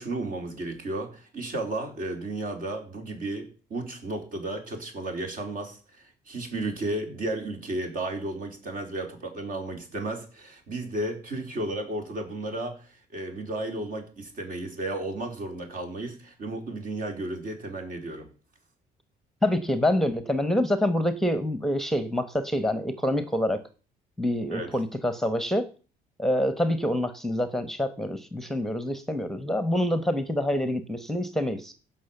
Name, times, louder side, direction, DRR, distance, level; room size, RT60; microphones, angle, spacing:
voice 1, 0.0-18.3 24.5-24.7, right 2 dB, 55° right, 4 dB, 4.0 m, -33 dB
voice 2, 19.4-23.6 24.2-25.7 26.2-31.7, left 1 dB, ahead, 11 dB, 1.1 m, -26 dB
15.5 x 6.0 x 7.1 m, 0.38 s
cardioid pair, 110°, 17 cm